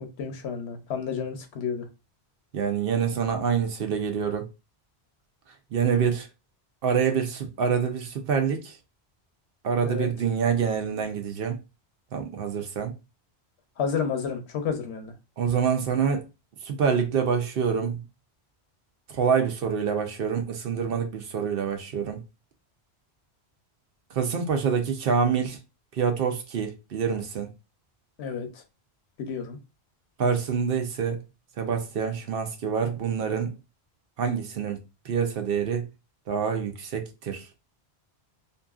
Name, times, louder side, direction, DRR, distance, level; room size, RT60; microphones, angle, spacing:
voice 1, 0.0-1.9 9.8-10.1 13.8-15.1 28.2-28.6 29.2-29.6, left 6 dB, 80° left, 0.9 m, -31 dB
voice 2, 2.5-4.5 5.7-6.3 6.8-8.8 9.6-11.6 12.1-12.9 15.4-16.3 16.6-18.0 19.1-22.2 24.1-25.6 25.9-27.5 30.2-31.2 31.6-33.5 34.2-35.9 36.3-37.5, right 6 dB, 65° right, 0.8 m, -26 dB
2.7 x 2.6 x 2.3 m
omnidirectional pair, 1.1 m